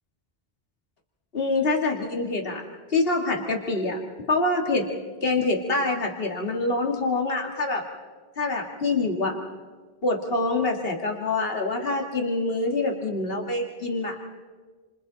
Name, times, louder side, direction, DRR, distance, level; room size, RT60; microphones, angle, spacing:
voice 1, 1.3-2.6 2.9-4.0 4.3-7.8 8.4-9.4 10.0-14.2, left 2 dB, 65° left, 1 dB, 2.3 m, -25 dB
29.0 x 26.5 x 4.0 m, 1.4 s
omnidirectional pair, 1.1 m